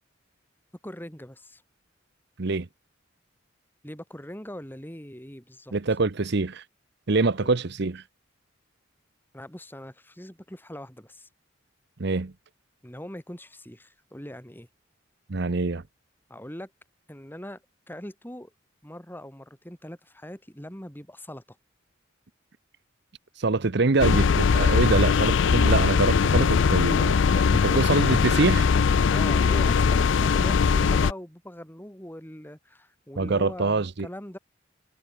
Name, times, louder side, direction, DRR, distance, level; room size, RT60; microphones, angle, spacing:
voice 1, 0.8-1.6 3.8-5.7 7.4-7.5 9.3-11.3 12.8-14.7 16.3-16.7 17.1-17.6 17.9-18.5 18.8-21.4 29.1-34.4, equal, 10° left, 4.6 m, -41 dB
voice 2, 5.7-6.6 7.1-8.0 12.0-12.3 15.3-15.8 23.4-28.7 33.2-34.1, right 3 dB, 60° right, 0.8 m, -25 dB
sound 1, 24.0-31.1, left 5 dB, 70° left, 0.4 m, -21 dB
head